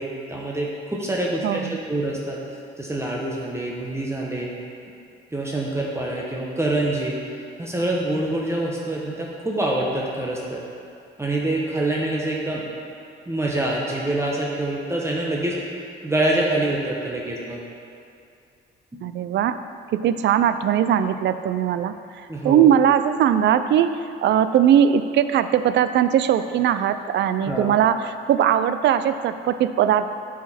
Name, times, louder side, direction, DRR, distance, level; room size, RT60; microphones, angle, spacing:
voice 1, 0.0-2.4 2.8-4.5 5.3-7.2 7.6-10.6 11.2-12.6 13.3-15.6 16.0-17.6 22.3-22.7 27.4-27.7, right 1 dB, 15° right, -3 dB, 0.9 m, -25 dB
voice 2, 1.4-1.8 19.0-19.6 19.9-21.9 22.4-24.0 24.2-30.1, right 9 dB, 65° right, 11 dB, 0.4 m, -20 dB
8.1 x 5.0 x 4.2 m, 2.5 s
cardioid pair, 90°, 20 cm